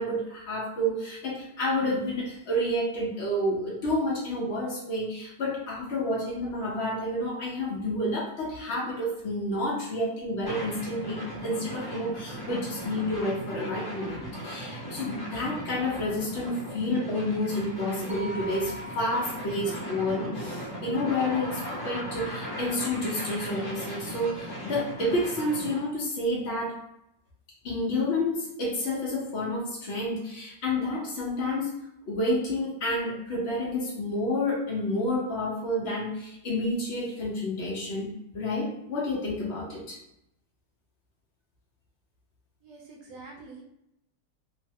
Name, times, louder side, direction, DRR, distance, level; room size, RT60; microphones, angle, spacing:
voice 1, 0.0-26.8 27.6-31.7 32.1-40.0, left 1 dB, 75° left, -4 dB, 0.6 m, -30 dB
sound 1, 10.5-25.9, equal, 25° left, 0.4 m, -38 dB
sound 2, 18.1-22.3, left 1 dB, 35° right, 0.4 m, -45 dB
voice 2, 42.6-43.6, right 3 dB, 70° right, -1 dB, 1.0 m, -46 dB
3.0 x 2.0 x 2.7 m, 0.81 s
omnidirectional pair, 2.0 m